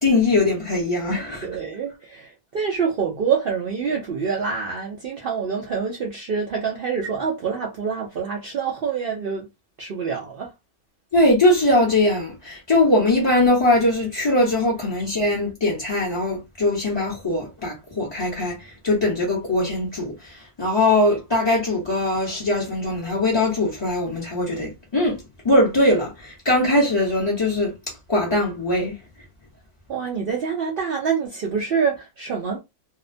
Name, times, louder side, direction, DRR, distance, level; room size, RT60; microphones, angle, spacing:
voice 1, 0.0-1.5 11.1-27.7 28.1-28.9, left 1 dB, 35° left, 0.4 m, -21 dB
voice 2, 1.4-9.5 9.8-10.5 29.9-32.6, right 6 dB, 75° right, 0.5 m, -26 dB
2.8 x 2.0 x 2.5 m
omnidirectional pair, 1.6 m